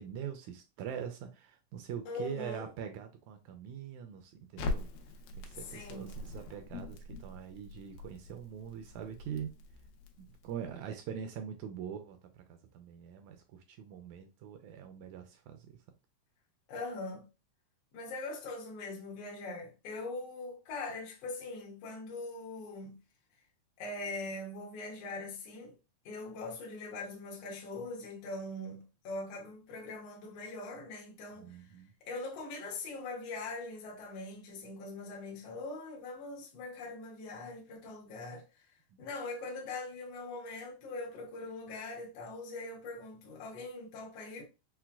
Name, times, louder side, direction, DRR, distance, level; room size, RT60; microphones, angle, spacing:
voice 1, 0.0-4.9 5.4-9.5 10.2-15.8 31.4-31.9 38.9-39.0, right 8 dB, 80° right, 1.7 m, -43 dB
voice 2, 2.0-2.7 5.6-6.2 16.7-17.3 17.9-23.0 23.8-25.7 26.0-31.7 32.0-38.7 39.0-44.4, left 2 dB, 65° left, 1.7 m, -42 dB
Crackle, 4.6-10.7, left 2 dB, 85° left, 2.2 m, -42 dB
5.7 x 2.1 x 2.2 m
omnidirectional pair, 3.6 m